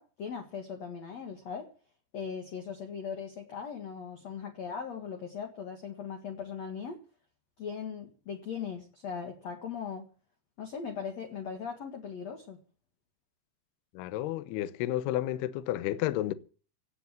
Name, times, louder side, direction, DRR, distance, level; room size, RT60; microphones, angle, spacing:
voice 1, 0.0-1.7 2.1-7.0 7.6-10.1 10.6-12.6, left 6 dB, 60° left, 1.8 m, -39 dB
voice 2, 13.9-16.3, left 14 dB, 75° left, 2.5 m, -31 dB
17.5 x 6.8 x 9.3 m
omnidirectional pair, 5.6 m